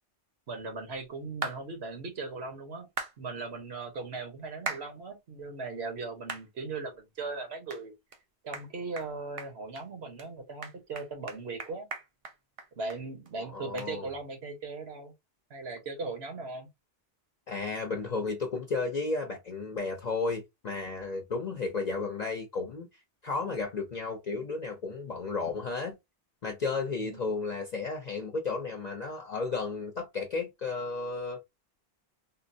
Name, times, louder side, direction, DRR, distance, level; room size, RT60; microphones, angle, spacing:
voice 1, 0.5-2.9 3.2-7.9 8.4-11.9 12.8-15.1 15.5-16.7 27.0-27.2, right 3 dB, 90° right, 1.4 m, -38 dB
sound 1, 1.4-1.6 3.0-3.1 4.7-4.9 5.4-5.5 6.3-6.5 6.9-7.0 7.7-7.8 8.1-8.2 8.5-8.7 9.0-9.1 9.4-9.8 10.2-10.3 10.6-13.0 13.3-13.4 13.8-13.9, right 4 dB, 45° right, 0.5 m, -37 dB
voice 2, 13.4-14.1 17.5-22.9 23.2-26.0 26.4-31.4, left 4 dB, 45° left, 0.7 m, -33 dB
3.8 x 2.1 x 2.5 m
omnidirectional pair, 1.0 m